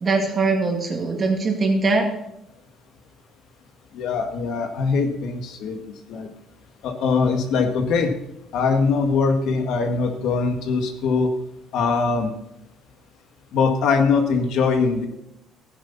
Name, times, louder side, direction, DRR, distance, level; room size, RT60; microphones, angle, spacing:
voice 1, 0.0-2.1, right 3 dB, 25° right, 2 dB, 2.3 m, -21 dB
voice 2, 3.9-5.8 6.1-6.3 6.8-8.1 8.5-11.3 11.7-12.3 13.5-15.1, left 4 dB, 60° left, 5 dB, 1.7 m, -22 dB
15.5 x 10.5 x 4.1 m, 0.84 s
cardioid pair, 175°, 0 cm